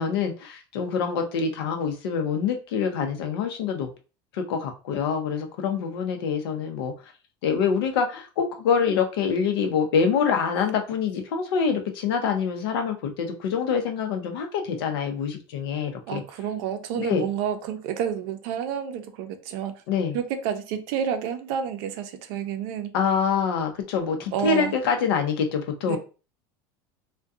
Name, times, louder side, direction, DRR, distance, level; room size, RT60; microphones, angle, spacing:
voice 1, 0.0-3.9 4.3-6.9 7.4-16.2 17.0-17.3 19.9-20.2 22.9-26.0, left 6 dB, 90° left, 0.6 m, -25 dB
voice 2, 16.1-19.8 20.1-22.9 24.3-24.7 25.8-26.0, right 8 dB, 70° right, 0.5 m, -29 dB
2.6 x 2.2 x 2.3 m
supercardioid pair, 120°, 12 cm